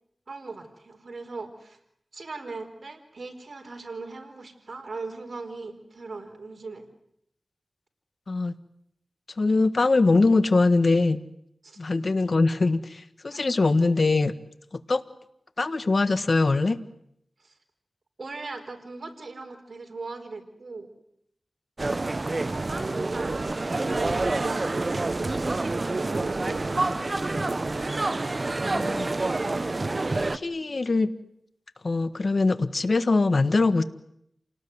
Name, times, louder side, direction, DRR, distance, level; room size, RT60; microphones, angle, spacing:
voice 1, 0.3-1.8 2.1-6.9 11.6-11.8 13.3-13.4 17.4-17.5 18.2-20.9 22.7-27.3, right 3 dB, 65° right, 5 dB, 4.5 m, -39 dB
voice 2, 9.4-11.2 11.8-14.3 14.7-15.0 15.6-16.8 28.6-29.1 30.3-31.1 31.8-33.8, left 3 dB, 60° left, 12 dB, 1.5 m, -22 dB
sound 1, 21.8-30.4, right 2 dB, 45° right, 1.1 m, -27 dB
28.0 x 19.0 x 9.6 m, 0.75 s
cardioid pair, 50°, 0 cm